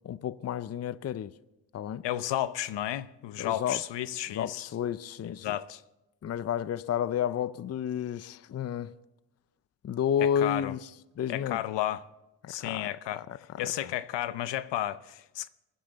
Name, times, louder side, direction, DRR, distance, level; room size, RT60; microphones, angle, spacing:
voice 1, 0.0-1.3 1.7-2.0 3.4-3.8 4.3-5.5 6.2-8.9 9.8-10.8 11.2-11.6 12.4-13.6, left 9 dB, 40° left, 0.5 m, -31 dB
voice 2, 2.0-4.7 5.3-5.8 10.2-10.7 11.3-12.0 12.5-13.2 13.6-15.5, left 12 dB, 75° left, 0.7 m, -32 dB
20.5 x 11.5 x 4.0 m
cardioid pair, 85°, 42 cm